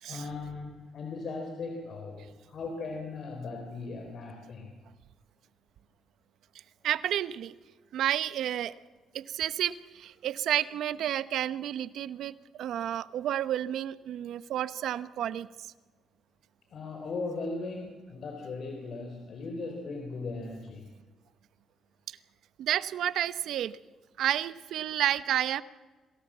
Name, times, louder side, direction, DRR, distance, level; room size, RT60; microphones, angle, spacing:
voice 1, 0.0-4.7 16.7-20.9, left 3 dB, 60° left, 3 dB, 3.8 m, -38 dB
voice 2, 6.8-7.5 7.9-8.7 9.1-15.7 22.6-23.8 24.2-25.6, right 11 dB, 75° right, 15 dB, 0.8 m, -31 dB
27.0 x 18.0 x 7.4 m, 1.4 s
cardioid pair, 90°, 0 cm